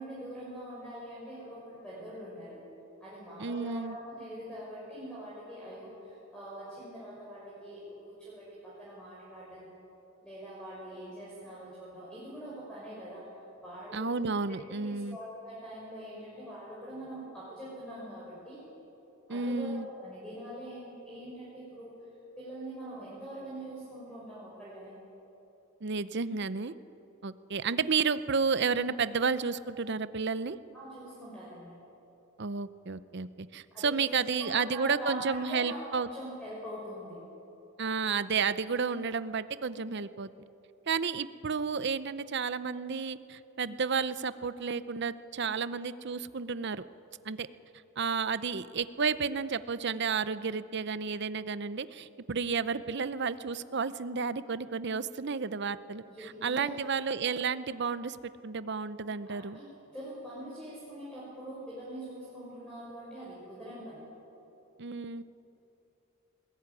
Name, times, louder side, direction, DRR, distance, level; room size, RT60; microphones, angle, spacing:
voice 1, 0.0-2.6 3.0-9.6 10.2-13.2 13.6-14.2 14.7-18.7 19.3-22.0 22.4-24.9 30.7-31.8 33.7-37.2 56.0-56.8 59.3-59.6 59.9-64.1, right 1 dB, 5° left, -8 dB, 6.0 m, -43 dB
voice 2, 3.4-4.0 13.9-15.2 19.3-19.9 25.8-26.7 27.2-30.6 32.4-36.1 37.8-40.3 40.9-46.8 47.2-47.5 48.0-58.2 58.4-59.6 64.8-65.2, right 5 dB, 55° right, 14 dB, 0.7 m, -32 dB
21.0 x 20.5 x 9.8 m, 3.0 s
head